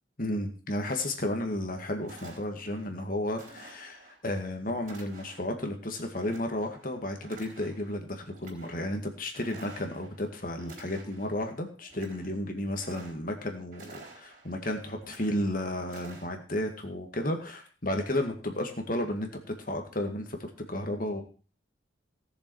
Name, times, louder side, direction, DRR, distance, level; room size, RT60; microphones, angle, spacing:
voice 1, 0.2-21.2, left 1 dB, 45° left, 4 dB, 2.1 m, -33 dB
sound 1, 1.6-1.7 2.0-2.9 3.4-4.2 4.8-5.5 6.1-6.9 7.2-8.0 8.3-8.9 9.3-10.2 10.6-11.4 11.8-12.3 12.7-13.4 13.7-14.6 15.0-15.5 15.9-16.3, right 3 dB, 45° right, 4.3 m, -51 dB
17.5 x 7.0 x 4.8 m, 0.38 s
head